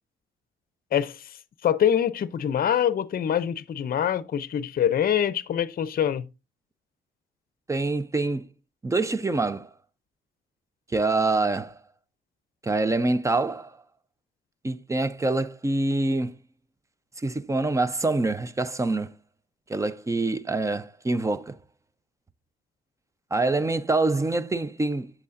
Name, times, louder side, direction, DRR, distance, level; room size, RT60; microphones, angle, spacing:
voice 1, 0.9-6.2, left 9 dB, 50° left, 0.6 m, -25 dB
voice 2, 7.7-8.5 8.8-9.7 10.9-11.8 12.6-13.7 14.6-16.4 17.2-19.1 19.7-21.5 23.3-25.1, right 2 dB, 15° right, 0.5 m, -25 dB
8.2 x 7.1 x 2.6 m
cardioid pair, 90°, 20 cm